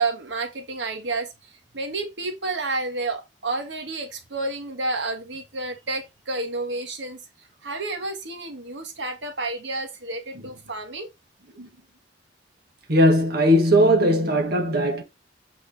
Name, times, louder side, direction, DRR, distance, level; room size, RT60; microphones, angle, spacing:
voice 1, 0.0-7.2 7.6-11.1, right 3 dB, 80° right, 1.6 m, -30 dB
voice 2, 12.9-15.0, equal, 60° right, 1.6 m, -19 dB
8.4 x 4.8 x 4.1 m
head